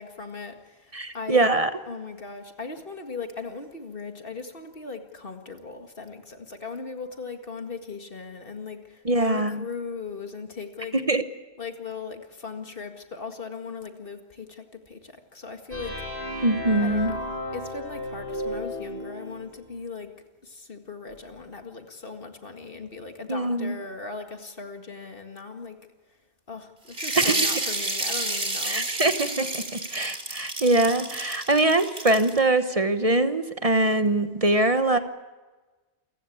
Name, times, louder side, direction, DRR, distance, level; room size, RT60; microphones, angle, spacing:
voice 1, 0.0-1.6 1.9-10.9 11.6-15.9 16.8-20.1 20.4-25.8 26.5-28.9, left 4 dB, 55° left, 6 dB, 2.2 m, -38 dB
voice 2, 0.9-1.7 9.0-9.6 10.9-11.2 16.4-17.1 23.3-23.8 27.2-27.3 28.7-35.0, right 2 dB, 35° right, 10 dB, 1.0 m, -23 dB
sound 1, 15.7-19.5, left 1 dB, 80° right, 8.1 m, -34 dB
sound 2, 26.9-32.4, right 2 dB, 65° right, 3.4 m, -30 dB
28.0 x 16.0 x 8.6 m, 1.2 s
omnidirectional pair, 1.1 m